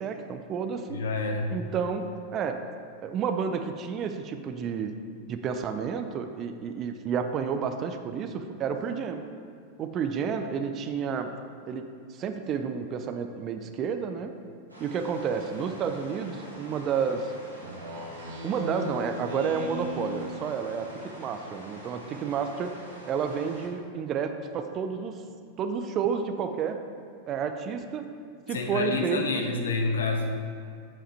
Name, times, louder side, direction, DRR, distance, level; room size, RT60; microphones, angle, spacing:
voice 1, 0.0-1.0 1.5-2.6 3.0-4.9 5.3-9.3 9.8-11.3 11.7-11.8 12.1-14.3 14.8-17.3 18.4-22.7 23.0-25.2 25.6-26.8 27.3-28.1 28.5-29.2, right 6 dB, 30° right, 7 dB, 0.5 m, -30 dB
voice 2, 0.9-1.5 28.5-30.4, left 3 dB, 65° left, 2 dB, 0.8 m, -28 dB
sound 1, 14.7-23.7, right 1 dB, 85° right, 1.3 m, -45 dB
Speech synthesizer, 17.6-20.7, left 1 dB, 60° right, 0.8 m, -37 dB
7.6 x 5.0 x 4.2 m, 2.3 s
figure-of-eight pair, 90°, 0 cm